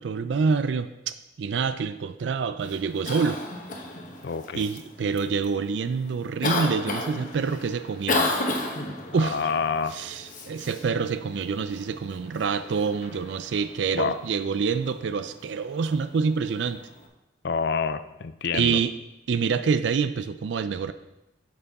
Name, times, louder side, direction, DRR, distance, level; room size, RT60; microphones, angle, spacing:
voice 1, 0.0-3.4 4.5-8.3 9.1-9.4 9.9-16.8 18.5-18.9 19.3-20.9, right 5 dB, 75° right, 12 dB, 0.4 m, -27 dB
Cough, 2.6-17.1, left 2 dB, 45° left, 1.1 m, -34 dB
voice 2, 4.2-4.6 9.2-9.9 13.9-14.2 17.4-18.8, left 5 dB, 60° left, 12 dB, 0.5 m, -27 dB
8.8 x 6.8 x 4.1 m, 0.94 s
head